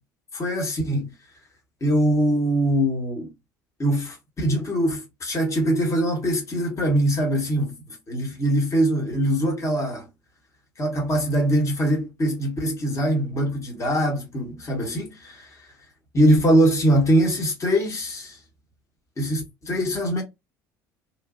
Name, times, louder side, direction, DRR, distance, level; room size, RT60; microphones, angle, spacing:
voice 1, 0.3-1.1 1.8-3.3 3.8-7.8 8.1-10.0 10.8-15.3 16.1-18.4 19.2-20.2, right 1 dB, 30° left, 1.3 m, -22 dB
2.9 x 2.5 x 2.5 m
figure-of-eight pair, 60°, 10 cm